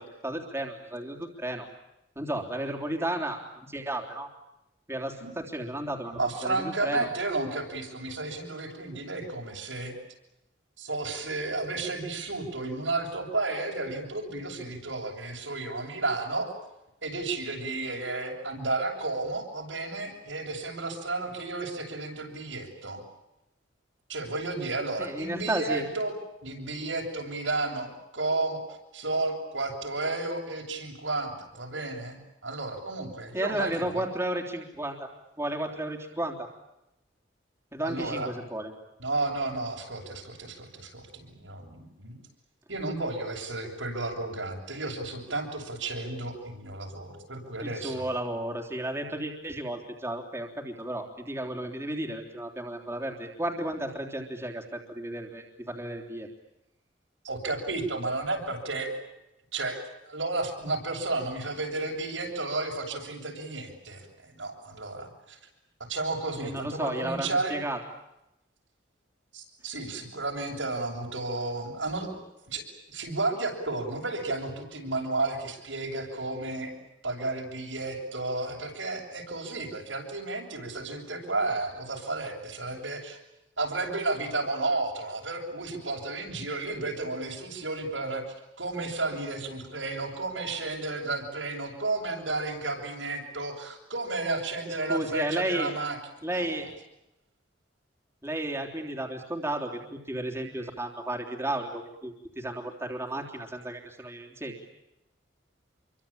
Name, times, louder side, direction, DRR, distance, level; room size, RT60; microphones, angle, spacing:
voice 1, 0.0-1.7 2.2-4.3 4.9-7.1 25.0-25.9 33.3-35.1 35.4-36.5 37.7-38.7 47.6-56.3 66.4-67.8 94.9-95.7 96.2-96.7 98.2-104.6, right 1 dB, 15° right, 0 dB, 3.5 m, -33 dB
voice 2, 6.1-9.9 10.8-16.5 17.0-23.0 24.1-26.1 26.4-28.6 28.9-34.0 37.8-38.3 39.0-42.2 42.7-48.1 57.2-58.9 59.5-59.8 60.1-65.4 65.9-67.5 69.3-72.2 72.5-76.7 77.0-83.2 83.6-88.2 88.6-96.6, right 2 dB, 85° right, 0 dB, 7.9 m, -32 dB
28.0 x 24.0 x 8.9 m, 0.89 s
head